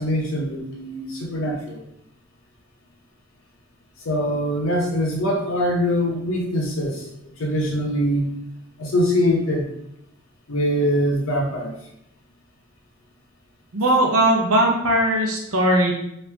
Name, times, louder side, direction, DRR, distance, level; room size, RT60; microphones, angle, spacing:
voice 1, 0.0-1.8 4.0-8.4 8.8-9.7 10.5-11.7, equal, 65° left, 0 dB, 0.8 m, -23 dB
voice 2, 13.7-15.9, right 1 dB, 80° right, 0 dB, 0.8 m, -19 dB
3.2 x 2.6 x 3.3 m, 0.79 s
head